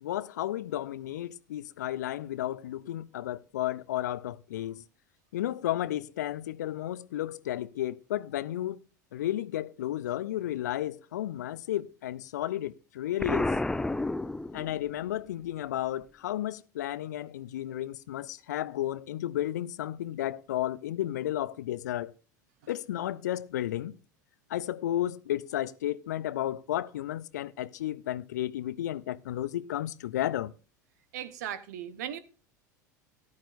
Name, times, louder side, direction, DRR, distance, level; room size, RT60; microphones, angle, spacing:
voice 1, 0.0-4.8 5.3-8.8 9.1-13.5 14.5-22.1 22.7-23.9 24.5-30.5, left 13 dB, 70° left, 0.6 m, -33 dB
Explosion, 13.2-15.0, left 2 dB, 5° left, 0.5 m, -30 dB
voice 2, 31.1-32.2, right 10 dB, 65° right, 1.2 m, -37 dB
14.5 x 11.5 x 2.6 m
figure-of-eight pair, 75°, 10 cm